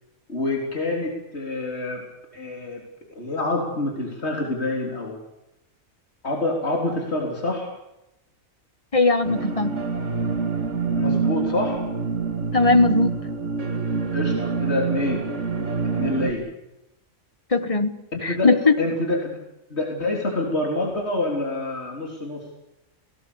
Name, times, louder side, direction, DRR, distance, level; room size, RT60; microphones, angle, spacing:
voice 1, 0.3-2.0 2.3-5.2 6.2-7.7 11.0-11.8 14.1-15.3 16.0-16.4 18.1-18.5 18.8-19.4 19.7-22.4, left 2 dB, 50° left, 0 dB, 4.1 m, -27 dB
voice 2, 8.9-9.7 12.5-13.2 17.5-18.8, left 3 dB, 25° left, 10 dB, 1.5 m, -19 dB
sound 1, 9.2-16.3, right 5 dB, 60° right, 2.5 m, -26 dB
29.0 x 19.0 x 7.0 m, 0.89 s
omnidirectional pair, 1.4 m